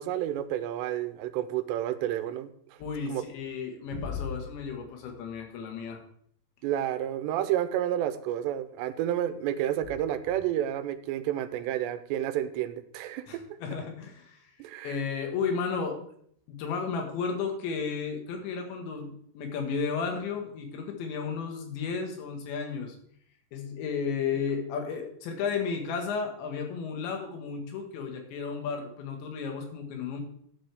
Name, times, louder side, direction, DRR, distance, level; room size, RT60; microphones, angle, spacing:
voice 1, 0.0-2.5 3.1-3.2 6.6-13.3 14.6-15.0, right 11 dB, 85° right, 12 dB, 2.7 m, -30 dB
voice 2, 2.8-6.0 13.3-14.5 14.8-16.0 16.5-23.0 23.5-30.2, left 5 dB, 80° left, 3 dB, 4.0 m, -33 dB
13.0 x 9.3 x 3.5 m, 0.66 s
omnidirectional pair, 5.1 m